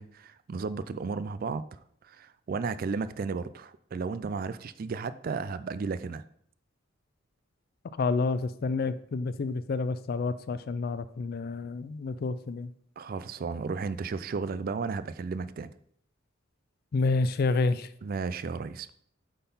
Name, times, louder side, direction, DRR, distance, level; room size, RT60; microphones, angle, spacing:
voice 1, 0.0-1.8 2.0-6.2 13.0-15.7 18.0-18.9, right 4 dB, 45° right, 0.3 m, -34 dB
voice 2, 8.0-12.7 16.9-17.9, left 3 dB, 50° left, 0.3 m, -29 dB
8.2 x 3.9 x 5.4 m
head